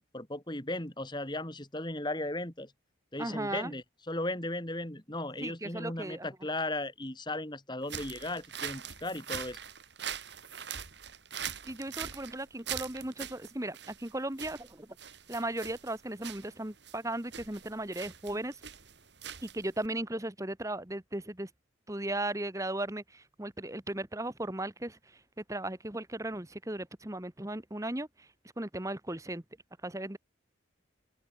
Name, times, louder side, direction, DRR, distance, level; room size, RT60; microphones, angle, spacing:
voice 1, 0.0-2.7 3.1-9.6, left 2 dB, 20° left, 3.0 m, -36 dB
voice 2, 3.2-3.7 5.4-6.3 11.6-14.9 15.3-18.6 19.4-21.5 21.9-25.0 25.4-28.3 28.6-29.4 29.8-30.2, right 1 dB, 15° right, 1.3 m, -36 dB
sound 1, 7.8-19.9, right 8 dB, 60° right, 3.6 m, -42 dB
open air
head